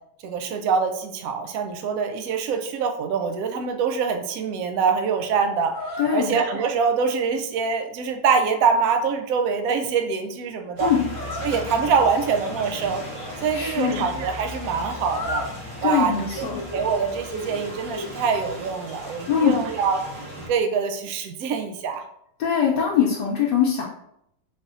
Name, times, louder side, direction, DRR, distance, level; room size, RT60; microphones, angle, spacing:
voice 1, 0.2-10.9 11.4-13.0 13.4-15.5 15.8-20.0 20.4-22.0, right 5 dB, 75° right, 5 dB, 0.8 m, -24 dB
sound 1, 5.7-6.1 11.1-11.5 15.0-15.6 16.0-16.9 17.3-18.1, left 2 dB, 55° left, 1.0 m, -33 dB
voice 2, 6.0-6.3 10.8-11.0 13.5-14.1 15.8-16.6 19.3-19.6 22.4-23.8, left 7 dB, 75° left, -3 dB, 1.2 m, -22 dB
sound 2, 10.8-20.5, equal, 35° right, 1.2 m, -37 dB
4.3 x 3.3 x 2.5 m, 0.75 s
omnidirectional pair, 1.9 m